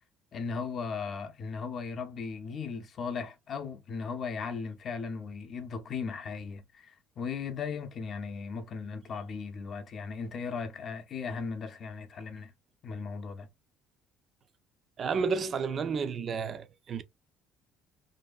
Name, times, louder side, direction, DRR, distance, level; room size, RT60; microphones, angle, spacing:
voice 1, 0.3-12.5 12.8-13.5, left 5 dB, 40° left, 0.6 m, -37 dB
voice 2, 15.0-17.0, right 5 dB, 40° right, 0.4 m, -31 dB
2.6 x 2.4 x 2.3 m
cardioid pair, 130°, 0 cm